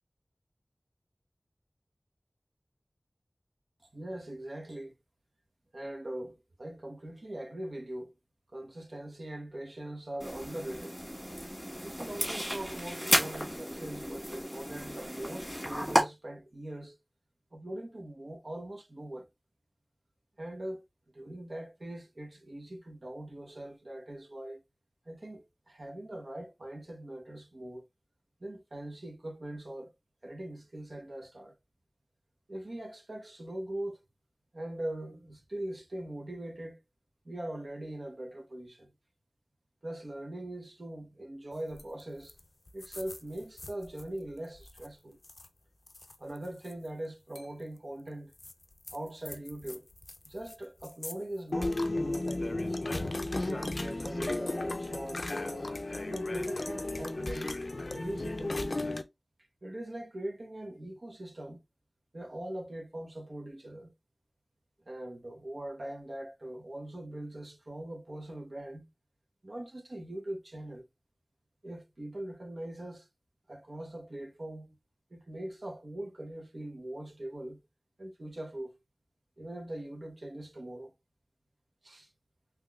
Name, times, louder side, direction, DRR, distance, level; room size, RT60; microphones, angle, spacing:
voice 1, 3.9-4.9 5.7-8.1 8.5-11.0 11.8-17.0 17.5-19.3 20.4-20.8 21.1-24.6 25.1-27.9 28.4-29.9 30.2-31.5 32.5-34.0 34.5-36.8 37.2-38.9 39.8-42.3 42.7-45.2 46.2-48.3 48.9-49.9 50.2-52.8 53.4-55.7 56.0-57.6 57.9-58.8 59.6-61.6 62.1-63.9 64.9-68.9 69.4-70.8 71.6-73.1 73.5-74.8 75.1-77.6 78.0-78.8 79.4-80.9 81.8-82.1, right 1 dB, 65° right, 0.9 m, -41 dB
sound 1, 10.2-16.0, equal, ahead, 1.6 m, -33 dB
sound 2, 41.7-42.0 42.3-42.4 42.7-44.0 44.6-44.9 45.2-45.5 45.9-46.7 47.4-47.5 48.4-50.6 50.8-51.1 51.5-59.0, left 2 dB, 60° left, 0.4 m, -35 dB
3.7 x 3.0 x 2.3 m
wide cardioid pair, 55°, 0 cm